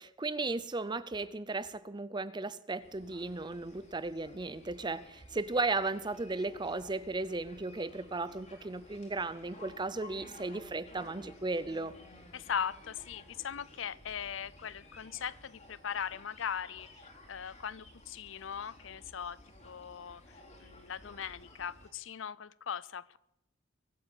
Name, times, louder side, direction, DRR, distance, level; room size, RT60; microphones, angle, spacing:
voice 1, 0.0-11.9, right 3 dB, 25° right, 15 dB, 0.6 m, -35 dB
sound 1, 2.8-21.9, left 1 dB, 40° left, 3.8 m, -55 dB
voice 2, 12.3-19.4 19.6-23.2, left 7 dB, 70° left, 20 dB, 0.6 m, -39 dB
23.0 x 8.5 x 7.1 m, 0.87 s
head